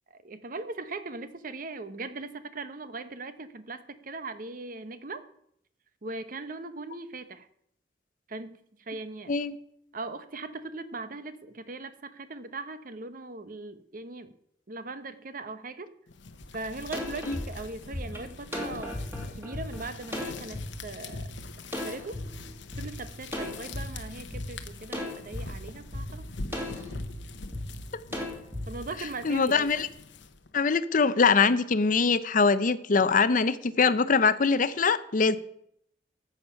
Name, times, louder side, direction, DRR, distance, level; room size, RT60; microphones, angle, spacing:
voice 1, 0.1-5.2 6.0-7.5 8.3-8.6 8.9-9.4 9.9-14.3 14.7-16.0 16.5-19.0 19.4-21.3 21.8-22.2 22.8-26.3 28.7-29.7, right 3 dB, 50° right, 12 dB, 0.8 m, -39 dB
sound 1, 16.1-30.5, left 3 dB, 85° left, 1.0 m, -45 dB
sound 2, 16.4-16.5 16.9-20.7 21.1-21.3 21.7-22.9 23.3-23.9 24.3-24.5 24.9-25.5 25.9-26.1 26.5-27.1 27.5-27.7 28.1-28.7, left 1 dB, 15° right, 2.3 m, -35 dB
voice 2, 29.2-29.9 30.5-35.4, left 5 dB, 45° left, 14 dB, 0.6 m, -23 dB
14.0 x 7.3 x 5.7 m, 0.72 s
head